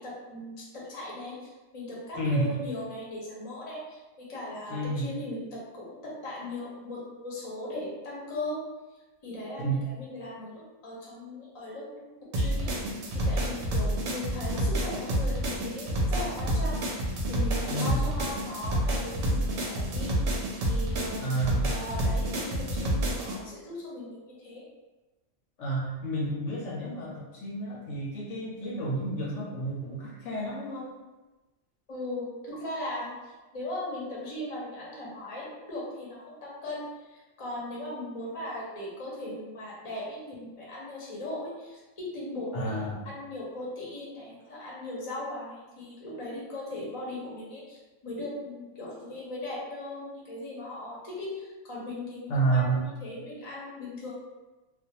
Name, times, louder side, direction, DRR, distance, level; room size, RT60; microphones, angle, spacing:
voice 1, 0.0-8.6 9.2-21.2 21.7-24.6 31.9-54.1, left 1 dB, 35° left, -5 dB, 0.6 m, -38 dB
voice 2, 2.1-2.5 4.7-5.1 9.6-9.9 17.7-18.1 21.2-21.7 25.6-30.9 42.5-43.0 52.3-52.8, right 2 dB, 70° left, -4 dB, 0.8 m, -30 dB
sound 1, 12.3-23.4, equal, 65° right, 0.8 m, -28 dB
2.4 x 2.1 x 2.8 m, 1.1 s
omnidirectional pair, 1.4 m